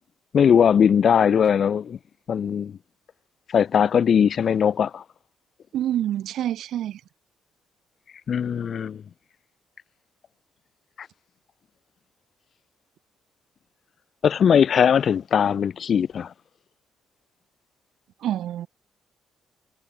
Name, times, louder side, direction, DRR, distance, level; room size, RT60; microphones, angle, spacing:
voice 1, 0.3-2.0 2.3-2.8 3.5-5.0 8.3-9.0 14.2-16.3, left 7 dB, 55° left, 0.4 m, -20 dB
voice 2, 5.7-7.0 18.2-18.7, right 11 dB, 75° right, 0.6 m, -27 dB
cardioid pair, 90°, 0 cm